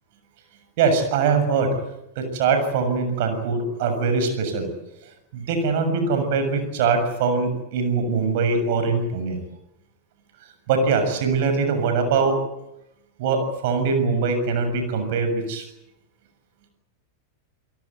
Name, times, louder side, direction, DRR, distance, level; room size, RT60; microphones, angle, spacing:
voice 1, 0.8-1.7 2.2-4.7 5.3-9.4 10.7-12.4 13.2-15.6, right 4 dB, 50° right, 7 dB, 7.0 m, -22 dB
28.5 x 18.0 x 9.7 m, 0.88 s
figure-of-eight pair, 90°, 0 cm